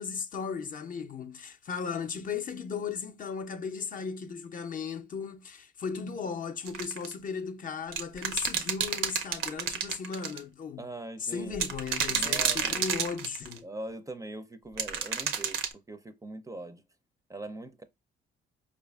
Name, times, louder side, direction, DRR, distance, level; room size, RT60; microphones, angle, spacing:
voice 1, 0.0-10.9 11.2-13.7, left 6 dB, 45° left, 0.5 m, -36 dB
sound 1, 6.7-7.1 7.9-10.4 11.5-13.6 14.8-15.7, right 7 dB, 85° right, 0.6 m, -30 dB
voice 2, 10.8-11.7 12.1-12.9 13.6-15.6 15.9-16.8 17.3-17.8, right 2 dB, 15° right, 0.4 m, -41 dB
4.7 x 2.4 x 2.2 m
cardioid pair, 90°, 20 cm